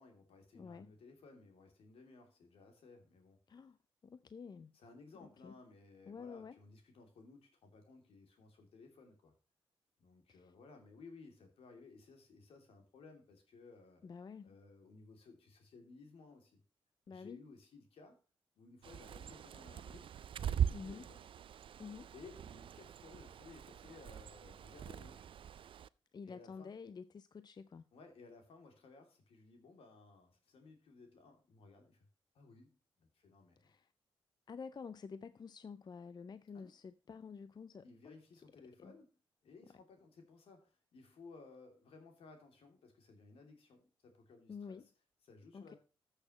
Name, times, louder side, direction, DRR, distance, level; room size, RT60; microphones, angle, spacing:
voice 1, 0.0-3.4 4.7-9.3 10.0-14.0 14.4-16.6 17.1-18.2 18.5-20.1 20.4-21.3 22.1-25.2 26.2-26.7 27.9-32.1 32.3-33.7 36.5-36.7 37.8-39.2 39.4-44.8 45.2-45.8, left 4 dB, 75° left, 2.8 m, -58 dB
voice 2, 0.5-0.9 3.5-4.7 5.2-5.5 6.1-6.6 10.3-10.5 14.0-14.5 17.1-17.4 20.7-21.1 21.8-22.1 26.1-27.8 33.6-33.9 34.5-38.2 38.8-39.0 44.5-44.9 45.5-45.7, left 5 dB, 45° left, 0.5 m, -49 dB
Bird, 18.8-25.9, right 9 dB, 60° right, 0.4 m, -41 dB
14.0 x 6.5 x 3.1 m
supercardioid pair, 55°, 10 cm